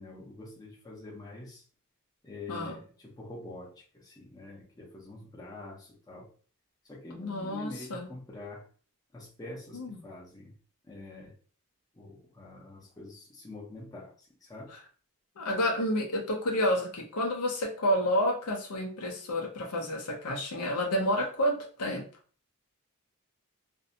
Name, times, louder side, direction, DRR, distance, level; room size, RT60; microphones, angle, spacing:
voice 1, 0.0-1.6 2.2-6.3 6.9-8.7 9.1-10.5 10.8-11.3 11.9-14.7, left 2 dB, 15° left, -3 dB, 0.6 m, -45 dB
voice 2, 2.5-2.8 7.1-8.1 9.7-10.0 15.4-22.0, equal, 85° left, 0 dB, 0.6 m, -30 dB
2.6 x 2.2 x 2.6 m, 0.41 s
head